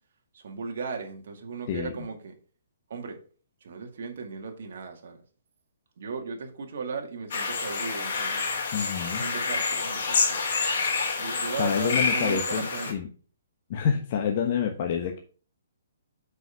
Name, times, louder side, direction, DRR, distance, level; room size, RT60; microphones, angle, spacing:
voice 1, 0.3-2.3 2.9-3.2 3.6-5.2 6.0-8.5 9.1-10.4 11.2-13.0, right 5 dB, 60° right, 3 dB, 2.1 m, -36 dB
sound 1, 7.3-12.9, left 4 dB, 60° left, 2.8 m, -28 dB
voice 2, 8.7-9.3 11.6-13.1 13.7-15.2, left 7 dB, 40° left, 2 dB, 1.1 m, -27 dB
6.1 x 5.4 x 5.7 m, 0.40 s
hypercardioid pair, 155°, 0 cm